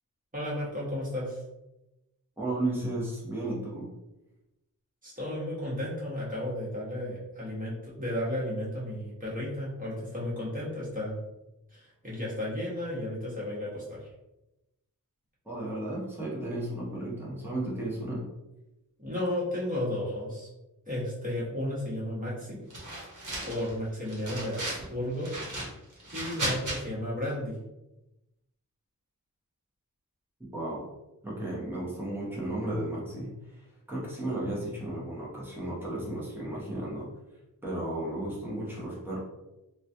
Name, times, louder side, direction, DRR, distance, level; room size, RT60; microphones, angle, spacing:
voice 1, 0.3-1.4 5.0-11.2 11.7-14.1 19.0-20.5 20.9-22.6 23.4-25.3 26.1-27.6, left 1 dB, 25° right, -7 dB, 1.4 m, -33 dB
voice 2, 2.4-3.9 15.4-18.2 30.5-30.9 31.2-37.1 37.6-39.2, right 1 dB, 5° right, -6 dB, 1.0 m, -34 dB
sound 1, 22.7-23.7 24.1-24.9 25.2-26.8, right 1 dB, 65° right, 1.0 m, -35 dB
3.0 x 2.3 x 2.6 m, 0.96 s
wide cardioid pair, 75°, 33 cm